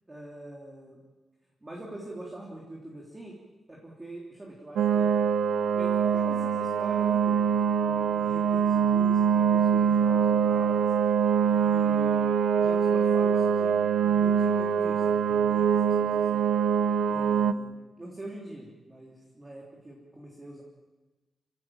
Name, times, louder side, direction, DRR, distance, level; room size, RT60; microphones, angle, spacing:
voice 1, 0.1-1.0 1.6-3.4 3.7-5.1 5.7-10.9 11.4-16.4 17.1-20.6, right 1 dB, 15° right, -2 dB, 3.4 m, -44 dB
sound 1, 4.8-17.5, right 7 dB, 80° right, 0.9 m, -24 dB
28.5 x 16.5 x 9.1 m, 1.2 s
wide cardioid pair, 165°, 0 cm